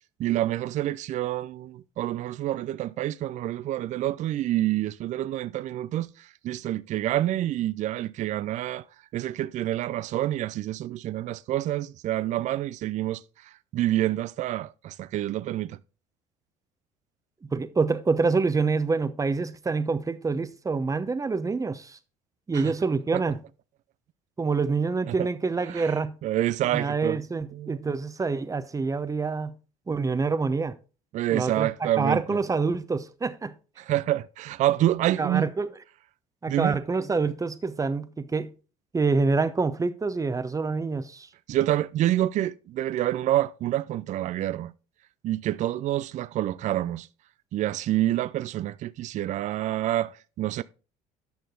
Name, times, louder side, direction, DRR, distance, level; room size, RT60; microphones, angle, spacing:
voice 1, 0.2-8.8 9.1-15.8 22.5-22.7 23.1-23.2 25.1-25.3 25.7-26.0 26.2-27.2 27.5-27.9 31.1-32.4 33.8-35.5 36.5-36.8 41.5-44.7 45.2-47.1 47.5-50.6, right 13 dB, 50° right, 0.4 m, -27 dB
voice 2, 17.5-22.0 22.5-23.4 24.4-26.1 26.7-29.6 29.9-30.8 31.3-33.5 35.2-35.7 36.4-38.5 38.9-41.3, right 4 dB, 20° right, 0.8 m, -26 dB
9.4 x 6.4 x 3.8 m
hypercardioid pair, 70°, 16 cm